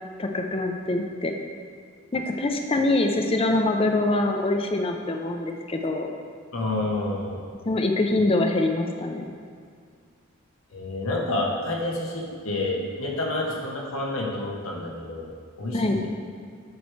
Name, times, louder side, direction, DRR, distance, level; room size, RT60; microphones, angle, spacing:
voice 1, 0.2-1.3 2.1-6.1 7.7-9.3 15.7-16.0, left 2 dB, 25° left, 3 dB, 0.5 m, -24 dB
voice 2, 6.5-7.4 10.7-15.3 15.6-16.1, left 2 dB, 75° left, -2 dB, 1.0 m, -29 dB
9.3 x 4.7 x 3.2 m, 2.2 s
head